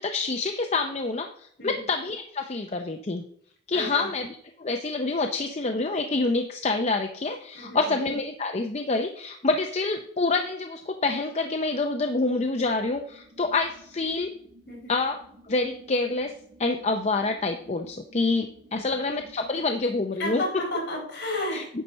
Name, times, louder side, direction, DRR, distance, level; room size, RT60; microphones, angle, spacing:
voice 1, 0.0-3.3 3.7-4.3 4.6-14.3 14.9-15.2 15.5-16.3 16.6-20.4 21.5-21.6, left 3 dB, 35° left, 5 dB, 0.6 m, -27 dB
voice 2, 3.7-4.1 7.5-7.9 14.7-14.9 18.7-18.8 20.2-21.7, left 1 dB, 60° left, -2 dB, 4.7 m, -32 dB
sound 1, 12.3-19.8, right 1 dB, 60° right, 4.3 m, -54 dB
10.0 x 6.7 x 4.2 m, 0.65 s
head